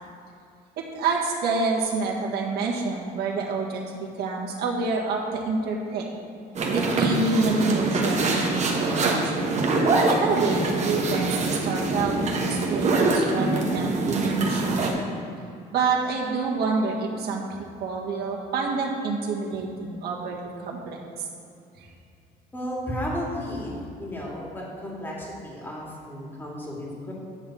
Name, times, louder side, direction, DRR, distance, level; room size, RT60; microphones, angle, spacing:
voice 1, 0.8-6.2 6.7-9.4 10.1-14.9 15.7-17.4 17.8-21.3 21.8-21.9, right 4 dB, 70° right, -2 dB, 1.7 m, -28 dB
sound 1, 6.5-14.9, right 2 dB, 40° right, 1.4 m, -24 dB
voice 2, 22.5-27.1, equal, 10° left, -4 dB, 2.2 m, -33 dB
10.0 x 3.9 x 7.1 m, 2.5 s
cardioid pair, 110°, 17 cm